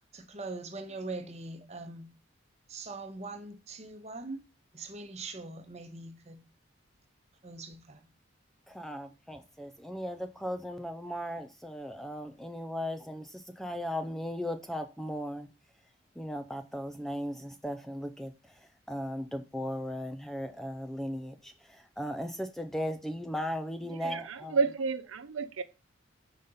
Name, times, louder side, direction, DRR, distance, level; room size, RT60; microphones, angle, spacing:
voice 1, 0.1-2.1 2.7-4.4 4.7-6.4 7.4-8.1, right 3 dB, 35° right, 0.9 m, -42 dB
voice 2, 8.7-15.5 16.2-24.6, equal, ahead, 0.4 m, -37 dB
voice 3, 24.0-25.6, right 5 dB, 80° right, 0.5 m, -30 dB
5.1 x 4.1 x 5.4 m
head